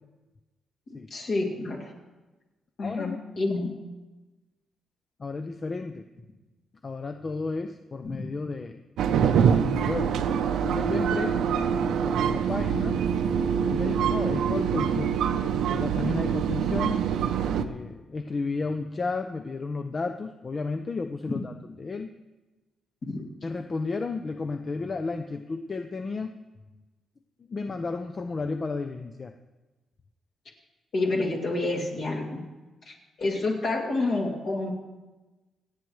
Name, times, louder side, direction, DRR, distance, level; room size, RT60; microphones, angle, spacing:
voice 1, 0.9-1.9 2.8-3.7 8.0-8.2 23.1-23.2 30.9-32.4 32.9-34.7, left 2 dB, 50° left, -1 dB, 2.3 m, -29 dB
voice 2, 2.8-3.2 5.2-6.0 6.8-8.8 9.3-10.1 10.6-11.6 12.3-13.0 13.6-15.2 15.5-17.0 17.6-22.1 23.4-26.3 27.5-29.3, left 3 dB, 25° left, 7 dB, 0.4 m, -33 dB
sound 1, 9.0-17.6, right 7 dB, 85° right, 0.6 m, -25 dB
27.0 x 9.1 x 3.1 m, 1.2 s
wide cardioid pair, 165°, 0 cm